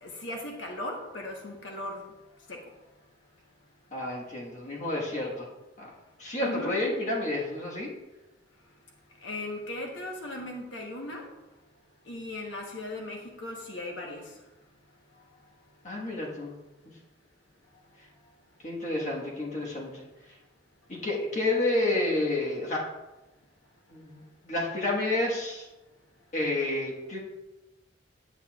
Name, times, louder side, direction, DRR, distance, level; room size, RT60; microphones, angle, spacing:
voice 1, 0.0-2.0 2.5-2.6 6.4-6.8 9.2-11.2 12.1-14.2, left 1 dB, 90° left, 1 dB, 1.1 m, -37 dB
voice 2, 3.9-5.5 5.8-5.9 6.2-7.9 15.8-16.5 18.6-20.0 20.9-22.8 23.9-25.7 26.3-27.2, left 2 dB, 40° left, -3 dB, 1.4 m, -30 dB
8.3 x 8.2 x 2.4 m, 1.0 s
head